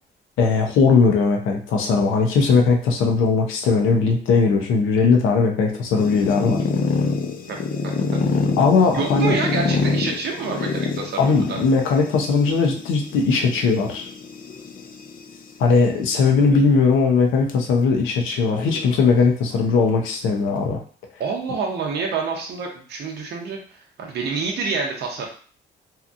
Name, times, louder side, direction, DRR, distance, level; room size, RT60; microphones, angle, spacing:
voice 1, 0.4-6.6 8.6-9.3 11.2-14.1 15.6-20.8, left 4 dB, 90° left, 2 dB, 0.6 m, -19 dB
sound 1, 6.0-15.4 16.2-16.7 17.1-17.2 17.5-17.6 18.5-19.6, left 4 dB, 45° left, 0.4 m, -27 dB
voice 2, 7.8-8.2 8.9-11.6 21.2-25.3, right 4 dB, 55° right, 0 dB, 0.6 m, -27 dB
2.8 x 2.4 x 2.5 m, 0.44 s
cardioid pair, 90°, 20 cm